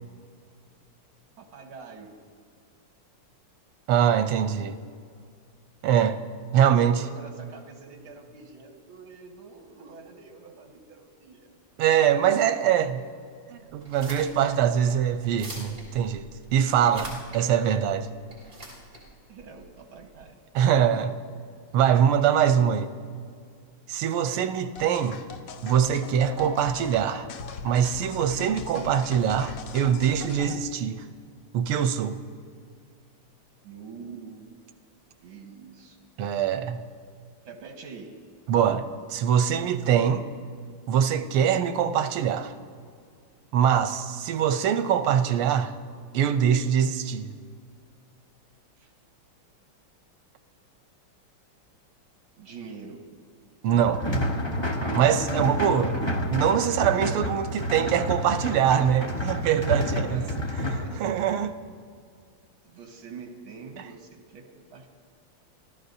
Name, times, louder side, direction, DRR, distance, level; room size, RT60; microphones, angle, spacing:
voice 1, 1.4-2.1 6.7-11.5 17.3-17.6 18.4-18.5 19.3-20.4 24.3-24.5 33.6-34.5 35.2-36.0 37.5-38.1 48.8-48.9 52.4-53.0 60.1-60.4 60.8-61.0 62.6-64.9, right 5 dB, 75° right, 3 dB, 2.2 m, -45 dB
voice 2, 3.9-4.8 5.8-6.2 6.5-7.0 11.8-13.0 13.5-18.1 20.5-21.1 21.7-22.9 23.9-25.2 25.6-27.3 27.6-31.0 31.5-32.2 36.2-36.8 38.5-40.3 40.9-42.5 43.5-45.7 46.1-47.3 53.6-54.0 54.9-56.0 56.3-60.2 61.0-61.5, right 9 dB, 90° right, 10 dB, 1.6 m, -23 dB
sound 1, 13.8-20.2, right 1 dB, 45° right, 3.8 m, -44 dB
sound 2, 24.8-30.6, left 5 dB, 75° left, 0.7 m, -40 dB
sound 3, 53.7-60.8, equal, 25° left, 0.6 m, -29 dB
25.5 x 15.0 x 2.7 m, 2.2 s
omnidirectional pair, 2.3 m